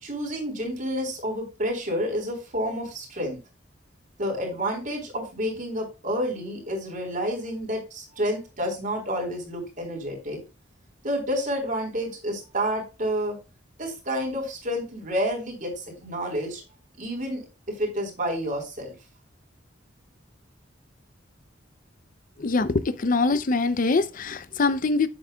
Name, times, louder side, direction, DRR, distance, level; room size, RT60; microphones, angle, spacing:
voice 1, 0.0-3.4 4.2-10.4 11.0-13.4 13.8-16.6 17.0-17.4 17.8-18.9, equal, 40° right, 4.2 m, -29 dB
voice 2, 22.4-25.1, left 3 dB, 45° left, 0.5 m, -23 dB
9.2 x 8.1 x 2.3 m
head